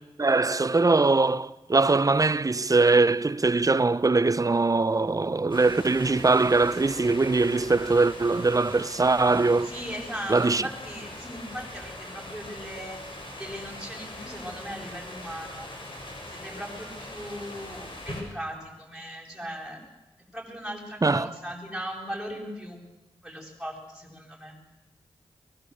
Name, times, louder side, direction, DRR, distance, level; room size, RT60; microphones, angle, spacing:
voice 1, 0.2-9.7 10.3-10.6 21.0-21.3, right 3 dB, 35° right, 0.9 m, -22 dB
sound 1, 5.5-18.2, left 1 dB, 50° left, 7.6 m, -41 dB
voice 2, 9.6-15.7 16.3-19.8 20.3-22.8 23.2-24.5, equal, 5° right, 7.8 m, -38 dB
23.5 x 20.0 x 8.0 m
cardioid pair, 45°, 10 cm